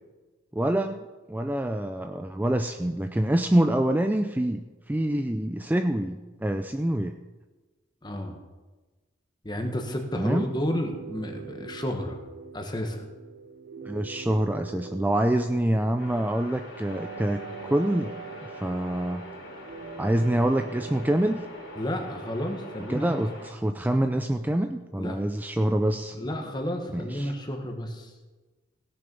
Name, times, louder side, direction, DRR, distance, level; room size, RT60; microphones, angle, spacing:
voice 1, 0.5-1.0 1.3-7.2 10.1-10.5 13.8-18.1 18.6-19.2 20.0-21.4 22.9-26.2 26.9-27.3, right 1 dB, 10° right, 6 dB, 0.4 m, -26 dB
voice 2, 8.0-8.4 9.4-12.2 12.5-13.0 21.8-23.1 25.0-25.2 26.1-28.1, equal, 25° left, 4 dB, 1.5 m, -31 dB
sound 1, 10.8-22.8, right 5 dB, 50° right, 0.7 m, -43 dB
sound 2, 16.0-23.5, left 1 dB, 80° left, 3.3 m, -44 dB
17.0 x 7.0 x 5.3 m, 1.2 s
head